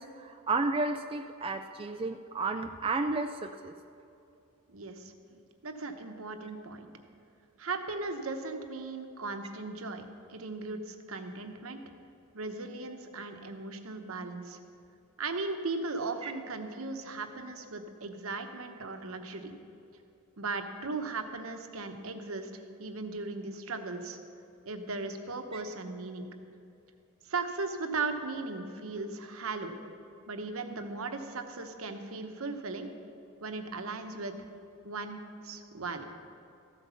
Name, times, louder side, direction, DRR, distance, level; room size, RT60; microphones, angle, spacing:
voice 1, 0.0-3.7 16.2-16.3 25.5-25.6, right 3 dB, 25° right, 6 dB, 0.3 m, -32 dB
voice 2, 4.7-6.9 7.6-11.8 12.3-14.6 15.2-19.5 20.4-24.2 24.6-26.3 27.2-29.8 30.3-32.9 33.4-34.3 34.8-36.0, right 3 dB, 70° right, 6 dB, 0.9 m, -37 dB
14.5 x 8.2 x 5.7 m, 2.7 s
head